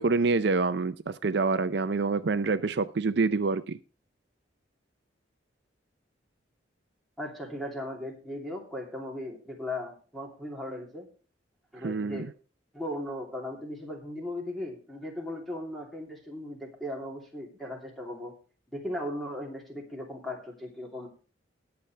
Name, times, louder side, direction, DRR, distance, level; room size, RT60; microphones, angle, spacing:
voice 1, 0.0-3.8 11.8-12.3, right 4 dB, 60° right, 12 dB, 0.5 m, -27 dB
voice 2, 7.2-11.1 11.7-12.2 12.7-18.3 18.7-21.1, left 1 dB, ahead, 0 dB, 2.9 m, -37 dB
20.0 x 7.0 x 3.3 m, 0.37 s
head